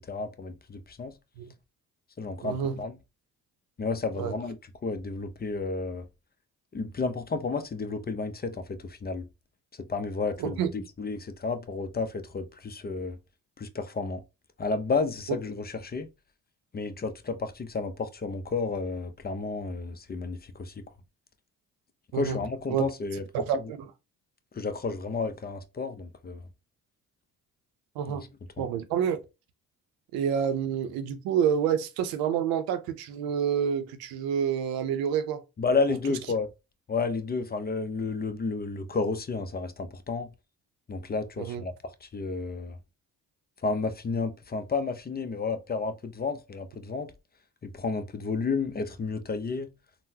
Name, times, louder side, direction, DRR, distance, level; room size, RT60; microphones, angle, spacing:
voice 1, 0.1-1.1 2.2-2.9 3.8-4.6 4.8-6.0 6.7-9.3 9.9-13.2 13.6-14.2 14.6-16.1 16.7-20.7 22.1-23.2 24.5-26.4 28.1-28.3 28.6-28.7 35.6-36.5 36.9-40.3 40.9-41.7 42.0-42.8 43.6-47.1 47.6-49.7, left 4 dB, 25° left, 0.5 m, -31 dB
voice 2, 2.4-2.8 4.2-4.3 10.4-10.7 15.3-15.4 22.1-22.4 22.7-22.9 23.3-23.9 28.0-28.2 28.6-29.2 30.1-35.4 36.1-36.2 41.4-41.6, right 8 dB, 90° right, 0.6 m, -28 dB
3.7 x 2.1 x 2.7 m
supercardioid pair, 65°, 36 cm